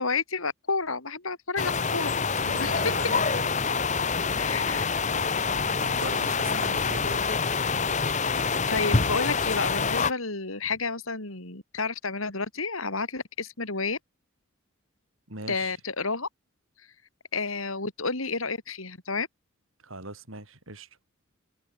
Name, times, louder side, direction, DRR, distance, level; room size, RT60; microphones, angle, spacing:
voice 1, 0.0-2.8 4.3-4.9 8.7-14.0 15.5-16.3 17.3-19.3, left 4 dB, 80° left, 4.4 m, -31 dB
sound 1, 1.6-10.1, left 5 dB, 35° left, 1.1 m, -26 dB
voice 2, 2.4-3.5 5.6-7.2 15.3-15.7 19.8-20.9, right 2 dB, 75° right, 6.8 m, -39 dB
head